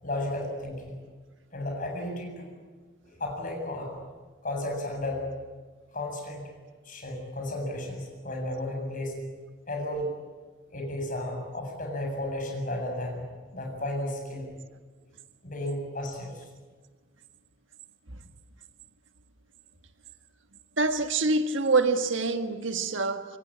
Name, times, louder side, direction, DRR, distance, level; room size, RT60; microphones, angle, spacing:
voice 1, 0.0-1.0 1.5-2.5 3.0-4.0 4.4-5.3 5.9-6.4 6.8-9.2 9.7-10.1 10.7-13.3 13.5-14.5 15.4-16.4, left 1 dB, 40° left, 7.6 m, -33 dB
voice 2, 20.8-23.2, right 3 dB, 70° right, 1.6 m, -25 dB
26.0 x 22.5 x 8.8 m
head